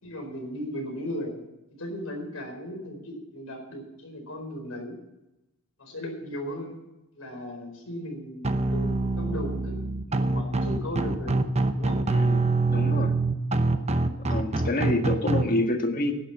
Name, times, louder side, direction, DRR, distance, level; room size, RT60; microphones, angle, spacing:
voice 1, 0.0-1.4 1.7-4.9 5.8-6.8 7.2-9.8 10.1-11.4 11.8-12.0, equal, 75° left, 2 dB, 4.5 m, -36 dB
sound 1, 8.4-15.4, right 3 dB, 30° right, 0.8 m, -25 dB
voice 2, 12.1-13.1 14.3-16.1, left 2 dB, 40° left, 4 dB, 1.5 m, -27 dB
11.0 x 9.9 x 7.2 m, 0.96 s
head